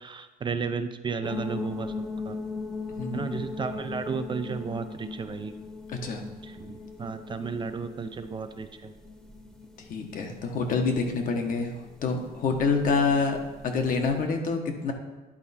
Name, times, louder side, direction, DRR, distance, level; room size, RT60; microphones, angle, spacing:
voice 1, 0.0-1.9 2.3-2.4 3.1-5.6 6.4-8.9, right 5 dB, 30° right, 9 dB, 0.4 m, -33 dB
sound 1, 1.2-14.3, left 3 dB, 5° left, 0.9 m, -39 dB
voice 2, 3.0-3.4 5.9-6.2 9.9-13.4 13.6-14.9, left 4 dB, 55° left, 4 dB, 1.1 m, -27 dB
10.0 x 4.4 x 4.2 m, 1.2 s
cardioid pair, 110°, 17 cm